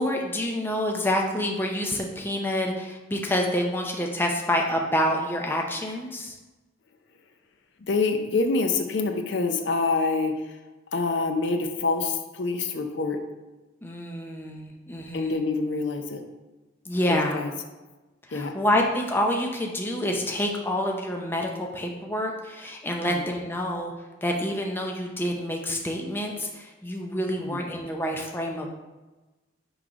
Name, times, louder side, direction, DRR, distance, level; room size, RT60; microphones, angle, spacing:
voice 1, 0.0-6.4 13.8-15.4 16.9-17.4 18.3-23.9 24.2-28.7, left 1 dB, 10° left, 1 dB, 0.5 m, -27 dB
voice 2, 7.9-10.6 10.9-13.2 15.1-16.2 17.1-17.5 18.3-18.6 23.0-23.2 27.4-27.6, left 3 dB, 60° left, 5 dB, 0.5 m, -26 dB
5.9 x 3.2 x 4.9 m, 1.1 s
head